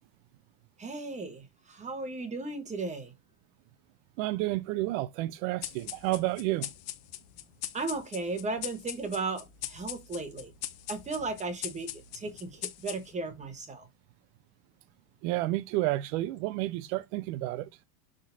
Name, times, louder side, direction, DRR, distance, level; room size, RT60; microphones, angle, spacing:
voice 1, 0.8-3.1 7.7-10.5 10.9-11.9 12.1-13.9, right 3 dB, 15° right, 1.1 m, -35 dB
voice 2, 4.2-6.7 15.2-17.7, right 17 dB, 55° right, 0.6 m, -30 dB
sound 1, 5.6-13.4, left 14 dB, 55° left, 1.0 m, -41 dB
11.5 x 3.8 x 2.7 m
cardioid pair, 160°, 44 cm